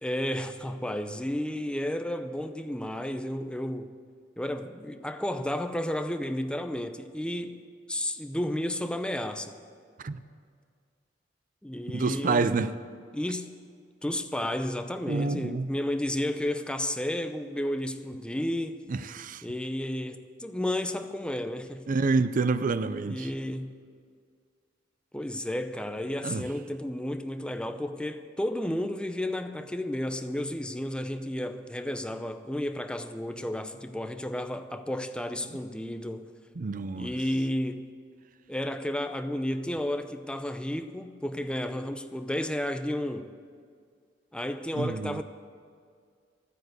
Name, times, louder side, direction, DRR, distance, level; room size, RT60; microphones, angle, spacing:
voice 1, 0.0-3.9 4.4-7.6 7.9-9.6 11.6-12.5 13.1-13.5 14.0-18.8 19.4-21.9 23.0-23.7 25.1-36.3 37.0-37.9 38.5-43.3 44.3-45.2, left 1 dB, 5° left, 0.6 m, -32 dB
voice 2, 11.9-12.7 15.1-15.7 18.9-19.4 21.9-23.3 26.2-26.4 36.6-37.1 44.7-45.2, right 4 dB, 45° right, 0.5 m, -28 dB
13.0 x 9.7 x 7.9 m
head